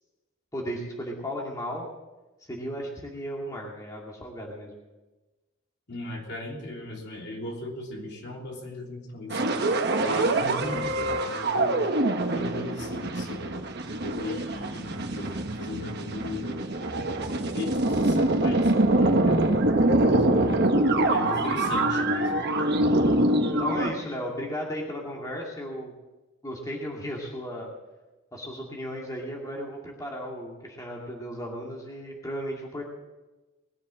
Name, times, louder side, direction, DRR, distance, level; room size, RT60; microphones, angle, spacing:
voice 1, 0.5-1.8 2.4-4.7 21.3-21.5 23.6-25.9 26.4-27.7 28.3-32.8, equal, 15° left, -2 dB, 2.2 m, -35 dB
voice 2, 5.9-9.5 9.9-11.9 12.3-13.6 14.0-16.6 17.1-20.6 21.1-22.3, left 2 dB, 55° left, -1 dB, 3.3 m, -37 dB
sound 1, 9.3-23.9, right 1 dB, 50° right, 1.3 m, -24 dB
20.5 x 7.4 x 7.5 m, 1.1 s
head